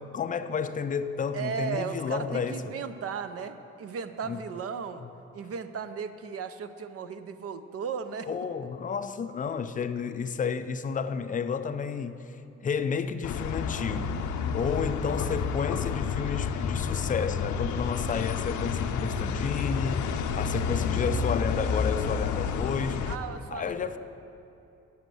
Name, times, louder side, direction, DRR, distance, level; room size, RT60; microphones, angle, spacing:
voice 1, 0.0-2.6 4.2-4.4 5.0-5.1 8.3-12.2 12.6-14.2 14.5-20.1 20.4-23.1 23.5-24.0, left 6 dB, 25° left, 0.4 m, -31 dB
voice 2, 1.3-5.1 5.3-8.3 23.1-24.0, right 6 dB, 50° right, 0.5 m, -36 dB
sound 1, 13.2-23.2, left 6 dB, 75° left, 0.6 m, -30 dB
9.3 x 6.4 x 6.2 m
cardioid pair, 90°, 30 cm